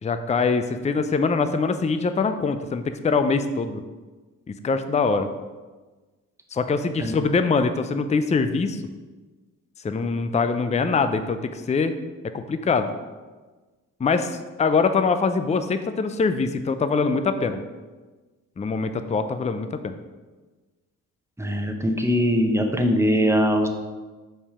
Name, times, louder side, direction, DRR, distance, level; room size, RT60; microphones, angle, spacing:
voice 1, 0.0-3.8 4.6-5.3 6.5-8.8 9.8-11.9 12.3-12.9 14.0-17.6 18.6-19.9, left 4 dB, 20° left, 9 dB, 0.5 m, -23 dB
voice 2, 21.4-23.7, equal, 10° right, 4 dB, 1.0 m, -21 dB
5.4 x 5.3 x 4.9 m, 1.3 s
supercardioid pair, 60°, 34 cm